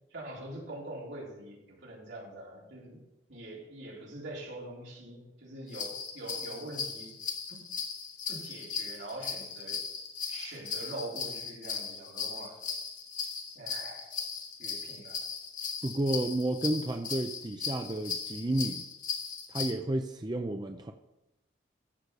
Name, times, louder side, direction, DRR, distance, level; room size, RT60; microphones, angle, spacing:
voice 1, 0.1-3.0 3.3-7.1 7.5-7.6 8.3-9.8 10.3-12.5 13.5-14.1 14.6-15.2, right 1 dB, 75° right, -4 dB, 4.1 m, -43 dB
sound 1, 5.7-19.7, left 6 dB, 45° left, 1.6 m, -38 dB
voice 2, 15.8-18.8 19.5-20.9, right 1 dB, 20° right, 5 dB, 0.5 m, -31 dB
14.5 x 5.1 x 6.8 m, 0.94 s
head